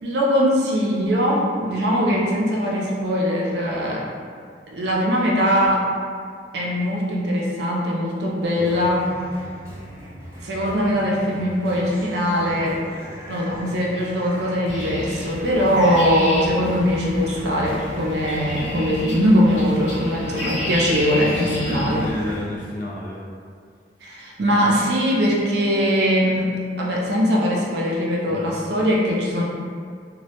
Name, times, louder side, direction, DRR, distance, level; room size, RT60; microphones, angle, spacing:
voice 1, 0.0-4.1 4.7-5.9 6.5-9.1 10.4-12.8 13.3-22.1 24.0-26.5 26.8-29.4, equal, 65° right, -3 dB, 0.4 m, -21 dB
sound 1, 8.5-22.5, equal, 15° right, 0.6 m, -39 dB
sound 2, 14.7-22.3, left 1 dB, 80° left, 0.9 m, -31 dB
voice 2, 21.2-23.2 28.3-28.6, left 1 dB, 50° left, -4 dB, 0.4 m, -32 dB
2.2 x 2.0 x 2.8 m, 2.1 s
head